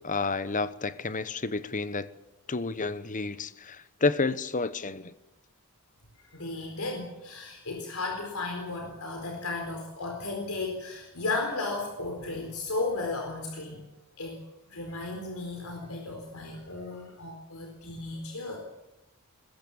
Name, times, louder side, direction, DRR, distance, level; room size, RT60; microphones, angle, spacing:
voice 1, 0.0-2.1 2.5-5.1, left 3 dB, 35° left, 1.0 m, -30 dB
voice 2, 6.2-13.8 14.2-18.6, left 3 dB, 85° left, 4.3 m, -35 dB
21.5 x 21.0 x 7.2 m
head